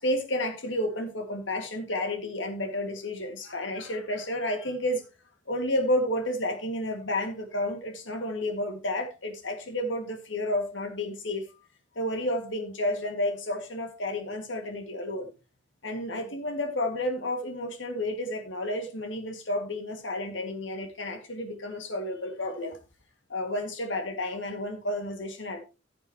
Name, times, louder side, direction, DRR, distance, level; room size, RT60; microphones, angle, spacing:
voice 1, 0.0-5.1 5.5-11.5 12.0-15.3 15.8-22.8 23.3-25.6, left 1 dB, 70° left, 6 dB, 2.1 m, -31 dB
14.5 x 7.5 x 3.0 m, 0.29 s
head